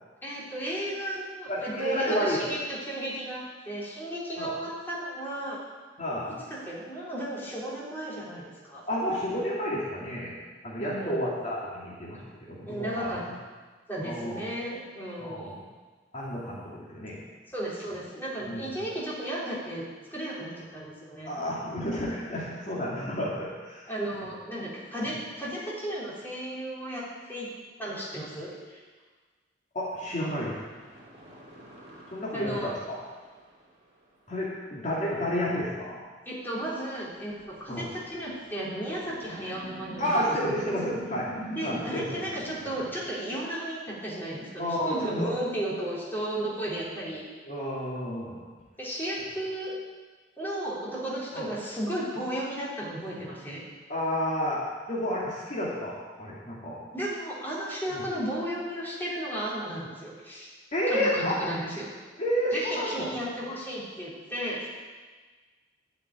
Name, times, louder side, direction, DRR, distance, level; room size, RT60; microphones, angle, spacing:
voice 1, 0.2-5.6 6.5-8.8 10.8-11.2 12.7-13.2 13.9-15.6 17.5-19.8 20.1-21.3 23.9-27.0 27.3-27.5 27.8-28.8 32.3-32.8 36.3-37.3 37.6-40.5 41.6-47.2 48.8-49.7 50.4-53.6 56.9-60.5 60.9-61.9 62.5-64.7, right 1 dB, 10° left, -7 dB, 3.4 m, -34 dB
voice 2, 1.5-2.4 4.4-4.5 6.0-6.4 8.9-10.3 10.6-13.1 14.0-14.4 15.2-15.6 16.1-16.6 16.9-17.2 18.4-18.8 21.3-23.9 29.7-30.5 32.1-33.0 34.3-36.0 37.7-37.9 40.0-41.3 41.6-42.1 44.6-45.3 47.4-48.4 51.3-51.5 53.9-54.6 54.9-56.8 57.9-58.0 60.7-61.3 62.2-63.1, equal, 40° left, -7 dB, 2.3 m, -30 dB
sound 1, 30.0-33.9 35.0-35.1 36.9-37.0 37.4-43.1, right 1 dB, 35° right, 2.2 m, -45 dB
12.0 x 5.9 x 9.3 m, 1.4 s
head